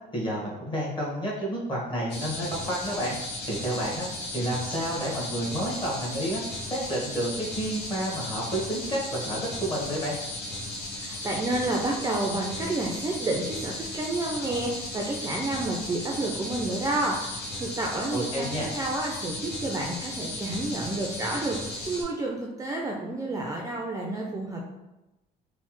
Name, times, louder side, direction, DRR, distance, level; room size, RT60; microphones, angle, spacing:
voice 1, 0.1-3.1 3.4-4.1 4.3-6.4 6.7-10.2 18.1-18.7, equal, 30° left, -4 dB, 1.2 m, -30 dB
sound 1, 2.1-22.0, left 2 dB, 85° left, 0.8 m, -36 dB
voice 2, 10.9-24.6, right 2 dB, 20° right, -1 dB, 0.4 m, -30 dB
3.2 x 2.0 x 3.0 m, 0.99 s
cardioid pair, 110°, 17 cm